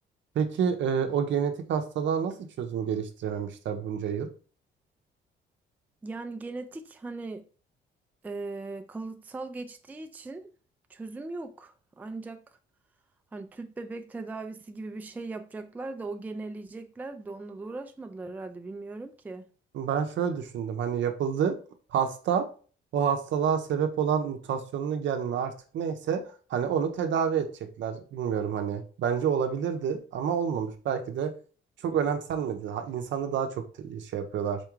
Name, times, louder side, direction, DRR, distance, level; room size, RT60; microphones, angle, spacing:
voice 1, 0.4-4.3 19.7-21.6 21.9-22.5 22.9-26.2 26.5-27.5 27.8-31.3 31.8-34.6, right 7 dB, 70° right, 0.6 m, -28 dB
voice 2, 6.0-7.4 8.2-10.5 10.9-12.4 13.3-19.4, right 3 dB, 10° right, 0.3 m, -39 dB
4.3 x 2.3 x 3.0 m
cardioid pair, 90°, 20 cm